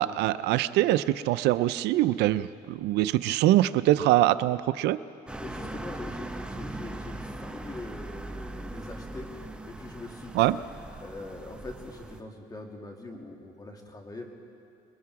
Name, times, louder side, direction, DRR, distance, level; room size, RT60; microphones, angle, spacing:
voice 1, 0.0-5.0 10.3-10.6, right 15 dB, 85° right, 15 dB, 0.5 m, -23 dB
voice 2, 5.3-10.6 11.0-14.3, left 2 dB, 20° left, 1 dB, 2.7 m, -42 dB
sound 1, 5.3-12.2, right 1 dB, 5° right, 1.1 m, -40 dB
26.5 x 21.5 x 4.8 m, 2.5 s
cardioid pair, 110°, 17 cm